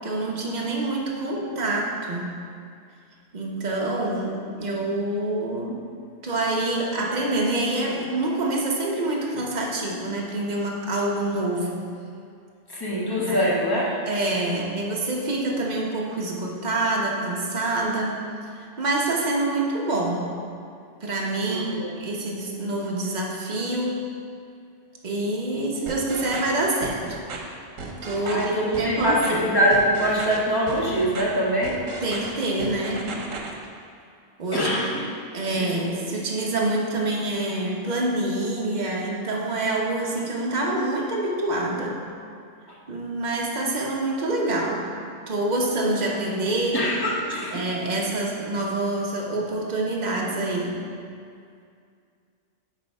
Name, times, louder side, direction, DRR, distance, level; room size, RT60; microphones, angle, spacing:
voice 1, 0.0-2.3 3.3-5.8 6.2-11.8 13.2-13.5 14.1-18.2 18.8-20.3 21.0-24.0 25.0-27.0 28.0-29.5 32.0-33.1 34.4-34.9 35.3-42.0 42.9-44.9 45.3-46.8 47.5-50.8, right 2 dB, 40° right, -2 dB, 1.0 m, -26 dB
voice 2, 12.7-13.9 21.4-21.9 28.2-31.8 34.5-35.0 35.5-35.9 46.7-47.6, equal, 20° left, -7 dB, 1.4 m, -24 dB
sound 1, 25.9-26.5 26.8-27.4 27.8-28.4 28.7-29.3 29.7-30.4 30.7-31.2 31.6-32.3 32.6-33.5, right 4 dB, 80° right, 1.2 m, -35 dB
8.9 x 3.4 x 5.4 m, 2.3 s
omnidirectional pair, 1.3 m